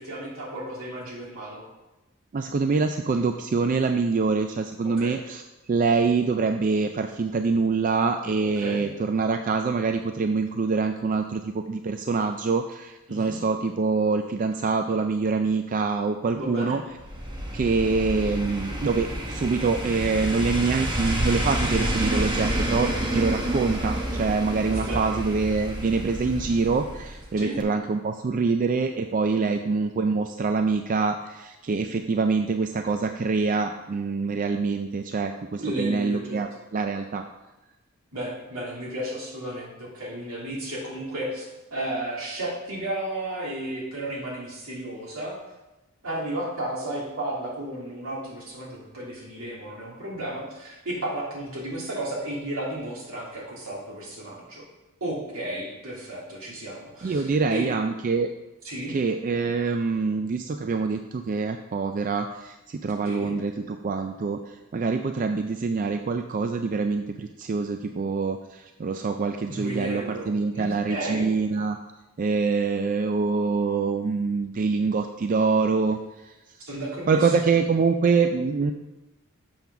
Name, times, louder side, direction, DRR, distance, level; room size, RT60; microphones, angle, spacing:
voice 1, 0.0-1.6 5.0-5.2 8.6-8.8 13.1-13.4 16.3-16.8 24.7-25.2 27.4-27.6 35.6-36.4 38.1-45.3 46.0-54.6 55.0-57.8 58.6-59.0 63.1-63.3 69.5-71.3 76.7-77.5, right 1 dB, 75° right, -4 dB, 2.8 m, -33 dB
voice 2, 2.3-5.4 5.7-16.8 17.5-37.2 57.0-58.3 58.9-71.8 72.2-76.0 76.2-76.3 77.1-78.7, right 4 dB, 40° right, 6 dB, 0.3 m, -25 dB
sound 1, 17.0-27.3 27.6-27.7, right 1 dB, 20° right, 1.0 m, -29 dB
7.0 x 5.8 x 5.9 m, 1.0 s
head